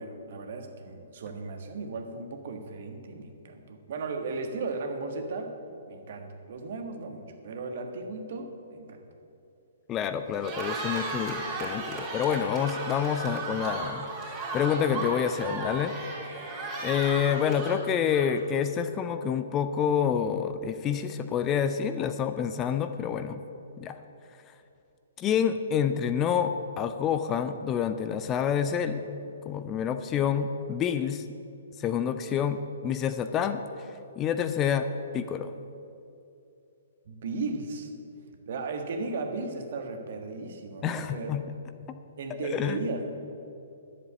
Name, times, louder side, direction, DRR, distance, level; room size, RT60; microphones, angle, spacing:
voice 1, 0.0-5.5 5.9-9.0 37.0-37.9 38.5-41.3 42.2-43.1, right 3 dB, 50° right, 5 dB, 1.4 m, -36 dB
voice 2, 9.9-15.9 16.8-23.4 23.8-24.0 25.2-29.0 29.5-31.2 31.8-33.6 34.2-34.9 35.1-35.5 40.8-41.4 42.5-42.8, left 8 dB, 20° left, 9 dB, 0.5 m, -28 dB
Cheering, 10.3-18.6, right 3 dB, 20° right, 3.1 m, -35 dB
11.0 x 7.6 x 8.1 m, 2.7 s
figure-of-eight pair, 120°, 0 cm